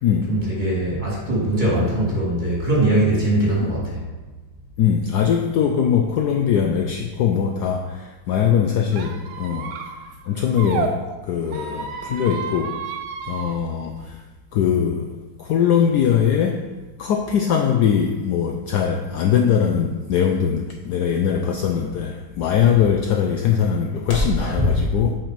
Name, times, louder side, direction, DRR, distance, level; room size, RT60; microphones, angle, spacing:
voice 1, 0.3-4.0 24.4-24.7, right 1 dB, 20° right, -6 dB, 2.8 m, -21 dB
voice 2, 4.8-9.7 10.3-12.8 13.3-14.2 14.5-16.6 17.0-25.2, left 8 dB, 80° left, 4 dB, 0.9 m, -21 dB
Squeak, 8.9-10.9 11.5-13.6, right 7 dB, 75° right, 1.4 m, -31 dB
sound 1, 18.2-24.5, left 1 dB, 45° left, 2.0 m, -35 dB
8.7 x 5.1 x 5.1 m, 1.3 s
omnidirectional pair, 2.3 m